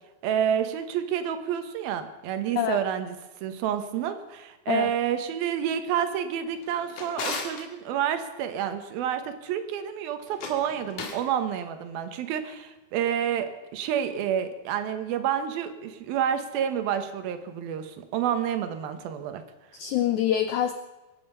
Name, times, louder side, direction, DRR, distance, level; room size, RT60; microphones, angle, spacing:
voice 1, 0.2-3.2 3.4-19.4, right 9 dB, 75° right, 9 dB, 2.9 m, -29 dB
Drawer open or close, 6.5-7.7 10.2-11.3, left 4 dB, 60° left, 3.0 m, -36 dB
voice 2, 19.7-20.7, left 11 dB, 85° left, 9 dB, 1.7 m, -25 dB
23.5 x 9.3 x 5.5 m, 1.1 s
omnidirectional pair, 4.4 m